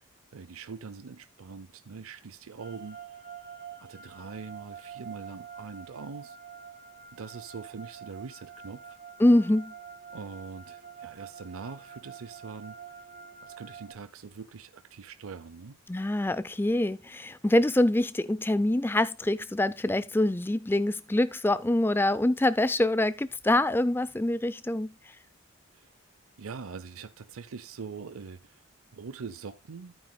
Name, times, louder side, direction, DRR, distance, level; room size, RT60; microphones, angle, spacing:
voice 1, 0.3-3.0 3.8-6.4 7.1-9.0 10.1-12.8 13.4-15.8 25.7-25.9 26.4-28.6 28.9-30.0, right 5 dB, 85° right, 0.6 m, -43 dB
sound 1, 2.6-13.9, right 7 dB, 40° right, 2.8 m, -47 dB
voice 2, 9.2-9.7 15.9-24.9, left 1 dB, 10° left, 0.4 m, -25 dB
10.5 x 9.2 x 2.2 m
head